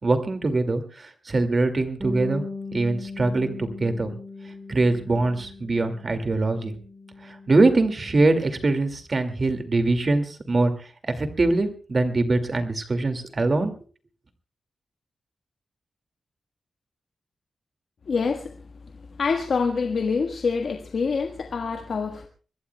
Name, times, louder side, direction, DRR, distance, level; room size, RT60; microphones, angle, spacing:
voice 1, 0.0-2.4 2.7-4.2 4.7-6.7 7.2-13.7, right 2 dB, 35° right, 7 dB, 2.3 m, -23 dB
Bass guitar, 2.0-8.3, left 3 dB, 15° right, 6.0 m, -38 dB
voice 2, 18.1-18.5 19.2-22.3, left 5 dB, 65° left, 4 dB, 1.5 m, -26 dB
24.5 x 20.5 x 2.3 m, 0.38 s
wide cardioid pair, 130°, 0 cm